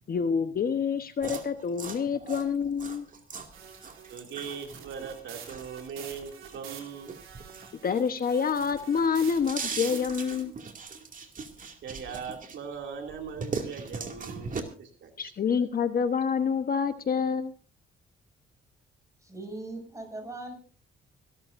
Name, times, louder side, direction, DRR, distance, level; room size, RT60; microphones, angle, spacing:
voice 1, 0.1-3.1 7.8-10.5 15.2-17.5, left 6 dB, 45° left, 10 dB, 1.1 m, -27 dB
sound 1, 1.2-8.3 8.7-12.8 13.1-14.6, right 5 dB, 40° right, 2.4 m, -39 dB
sound 2, 3.5-10.4, right 8 dB, 90° right, 3.2 m, -47 dB
voice 2, 4.1-7.2 11.8-14.5 14.8-15.3, right 6 dB, 70° right, 4 dB, 2.6 m, -40 dB
voice 3, 19.2-20.5, right 2 dB, 15° right, 4 dB, 6.4 m, -39 dB
25.0 x 12.5 x 2.6 m, 0.37 s
cardioid pair, 90°, 20 cm